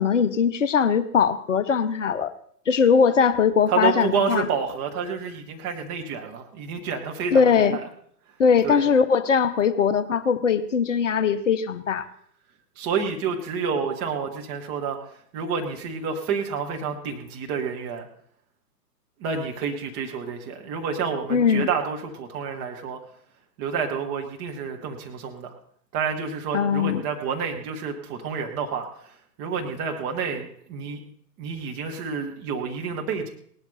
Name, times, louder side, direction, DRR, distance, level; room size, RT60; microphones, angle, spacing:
voice 1, 0.0-2.3 2.7-4.5 7.3-7.8 8.4-12.1 21.3-21.7 26.5-27.0, left 6 dB, 50° left, 12 dB, 0.8 m, -20 dB
voice 2, 3.7-7.8 8.6-8.9 12.8-15.0 15.3-18.1 19.2-23.0 23.6-25.5 25.9-31.0 31.4-33.3, right 6 dB, 15° right, 3 dB, 0.8 m, -29 dB
18.0 x 11.5 x 3.9 m, 0.63 s
figure-of-eight pair, 120°, 50 cm